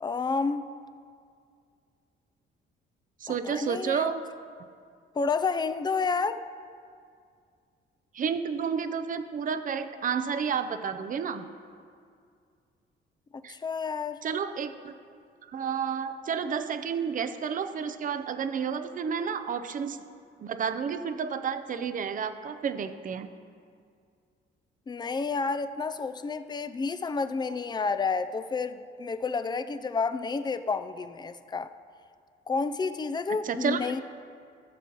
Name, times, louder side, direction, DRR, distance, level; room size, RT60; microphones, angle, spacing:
voice 1, 0.0-0.6 3.3-4.1 5.2-6.4 13.5-14.2 24.9-31.7 32.5-34.0, left 4 dB, 20° left, 11 dB, 0.4 m, -30 dB
voice 2, 3.2-4.2 8.1-11.5 13.4-13.5 14.2-14.9 15.4-20.0 20.4-23.3 33.4-34.0, right 6 dB, 45° right, 10 dB, 0.6 m, -31 dB
16.5 x 7.1 x 3.0 m, 2.2 s
cardioid pair, 90°, 20 cm